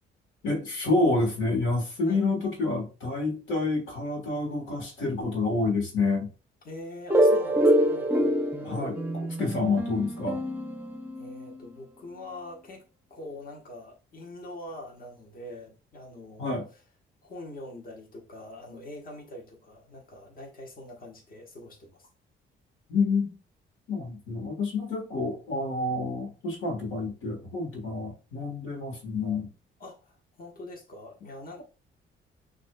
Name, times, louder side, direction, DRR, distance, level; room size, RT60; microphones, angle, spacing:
voice 1, 0.4-6.3 8.6-9.0 9.4-10.4 16.4-16.7 22.9-23.4 23.9-29.5, left 3 dB, 80° left, 1.4 m, -28 dB
voice 2, 6.6-8.4 11.2-12.8 13.1-16.6 17.2-22.1 29.8-31.6, left 1 dB, 45° left, 1.3 m, -44 dB
sound 1, 7.1-11.7, equal, 10° right, 0.6 m, -25 dB
6.1 x 2.6 x 2.2 m
cardioid pair, 90°, 20 cm